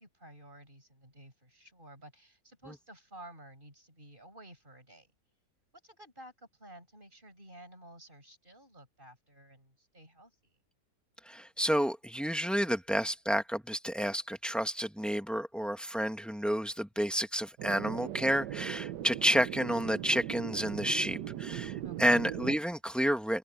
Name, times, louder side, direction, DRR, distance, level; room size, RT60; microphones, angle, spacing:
voice 1, 0.0-5.1 5.8-10.6 21.8-22.2, right 1 dB, 30° right, 7.8 m, -53 dB
voice 2, 11.2-23.4, equal, ahead, 1.3 m, -30 dB
sound 1, 17.6-22.6, right 12 dB, 80° right, 1.4 m, -39 dB
open air
omnidirectional pair, 1.9 m